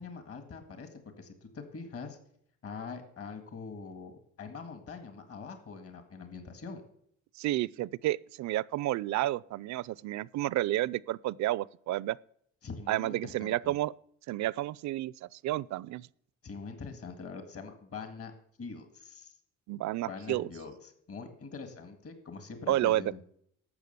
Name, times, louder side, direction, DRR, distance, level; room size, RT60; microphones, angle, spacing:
voice 1, 0.0-2.2 2.6-6.8 12.6-13.7 16.4-18.3 18.6-19.3 20.1-23.2, left 4 dB, 50° left, 1.9 m, -43 dB
voice 2, 7.4-12.2 12.9-13.9 14.3-16.1 19.7-20.5 22.7-23.0, right 15 dB, 70° right, 0.4 m, -31 dB
12.0 x 7.2 x 6.7 m
cardioid pair, 90°, 30 cm